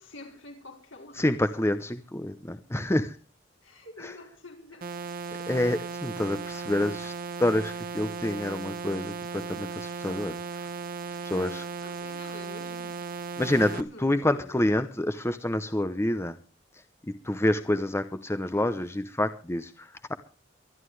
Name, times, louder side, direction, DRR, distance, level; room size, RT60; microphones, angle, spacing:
voice 1, 0.0-1.3 3.6-4.9 11.8-13.0 13.7-14.6, left 2 dB, 75° left, 4.7 m, -47 dB
voice 2, 1.2-3.2 4.0-4.1 5.5-7.1 7.4-10.7 11.2-11.6 13.4-16.4 17.1-20.1, left 1 dB, 15° left, 0.8 m, -28 dB
sound 1, 4.8-13.8, right 5 dB, 50° right, 0.9 m, -36 dB
24.0 x 11.5 x 3.2 m
head